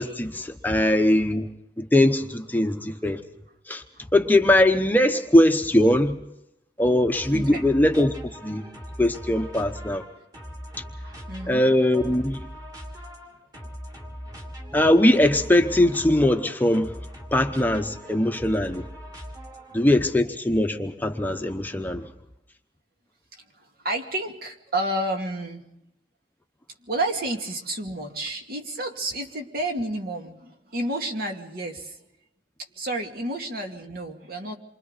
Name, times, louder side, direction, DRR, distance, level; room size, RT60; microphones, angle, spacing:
voice 1, 0.0-1.5 1.8-3.2 3.7-3.8 4.1-6.2 6.8-8.6 9.0-10.0 11.5-12.4 14.7-16.9 17.3-18.9 19.7-22.1, left 1 dB, 10° left, 0.9 m, -21 dB
sound 1, 7.1-19.9, equal, 25° right, 2.9 m, -40 dB
voice 2, 7.3-7.6 11.0-11.6 12.6-12.7 13.0-13.1 19.5-19.8 23.6-25.6 26.8-32.0 32.8-34.5, right 1 dB, 55° right, 2.4 m, -31 dB
28.0 x 24.5 x 4.1 m
head